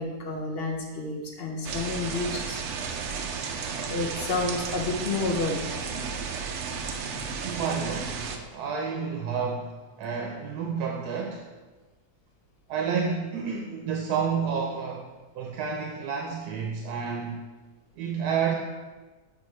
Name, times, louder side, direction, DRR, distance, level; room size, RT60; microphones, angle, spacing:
voice 1, 0.0-2.6 3.9-5.6, left 3 dB, 50° left, 0 dB, 0.9 m, -30 dB
sound 1, 1.6-8.4, right 5 dB, 65° right, 0.8 m, -33 dB
voice 2, 7.4-11.5 12.7-15.1 15.3-17.4 18.0-18.5, right 6 dB, 85° right, 1 dB, 1.1 m, -30 dB
6.3 x 5.2 x 3.1 m, 1.3 s
omnidirectional pair, 1.6 m